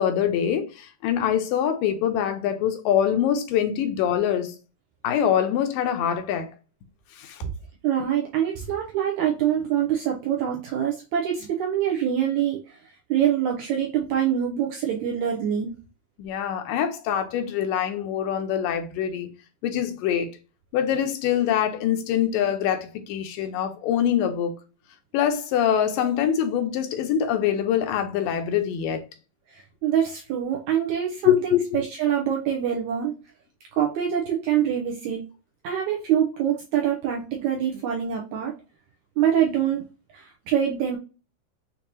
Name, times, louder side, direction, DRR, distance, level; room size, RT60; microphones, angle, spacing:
voice 1, 0.0-4.5 5.0-6.5 7.2-7.4 16.2-19.3 19.6-20.3 20.7-24.5 25.1-29.0 31.2-31.8, left 9 dB, 80° left, 2.2 m, -24 dB
voice 2, 7.8-12.6 13.1-15.7 29.8-33.1 33.8-35.2 35.6-38.5 39.2-39.8 40.1-41.0, right 9 dB, 85° right, 1.6 m, -25 dB
6.7 x 2.6 x 2.8 m
omnidirectional pair, 4.0 m